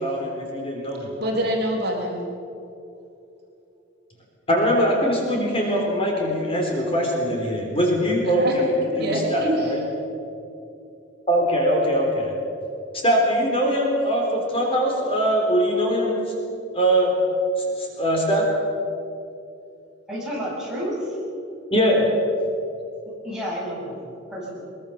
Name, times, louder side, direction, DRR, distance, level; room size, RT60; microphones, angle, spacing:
voice 1, 0.0-1.1 4.5-8.7 9.0-9.8 11.3-12.3 13.0-16.2 16.7-17.2 17.8-18.5 21.7-22.1, equal, 30° left, -1 dB, 3.9 m, -22 dB
voice 2, 1.2-2.2 8.2-8.6 8.8-9.7, right 1 dB, 50° right, 0 dB, 3.9 m, -25 dB
voice 3, 20.1-21.2 23.2-24.6, equal, 5° right, -6 dB, 7.7 m, -30 dB
22.5 x 21.5 x 7.1 m, 2.8 s
head